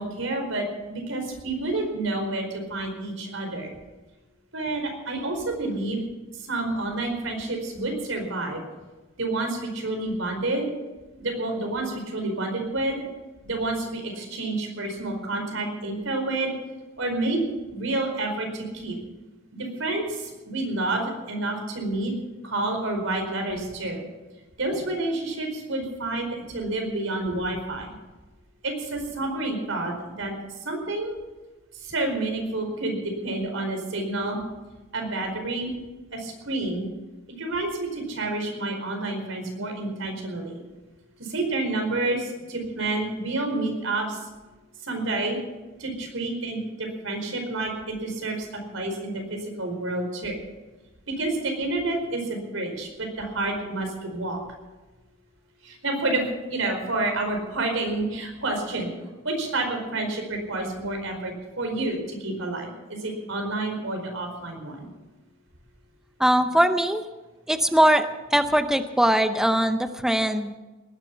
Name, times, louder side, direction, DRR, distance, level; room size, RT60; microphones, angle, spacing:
voice 1, 0.0-3.7 4.5-6.0 6.3-8.6 9.2-10.7 11.2-13.0 13.4-16.5 17.0-18.9 19.5-22.1 22.4-24.0 24.6-27.9 28.6-30.3 30.6-31.1 31.7-34.4 34.9-35.7 36.1-36.9 37.3-40.6 41.2-44.2 44.8-45.4 45.8-50.4 51.1-54.4 55.6-58.9 59.2-64.9, right 2 dB, 90° right, 3 dB, 4.7 m, -29 dB
voice 2, 66.2-67.0 67.5-70.5, equal, 5° right, 8 dB, 0.6 m, -21 dB
19.0 x 11.0 x 6.0 m, 1.1 s
head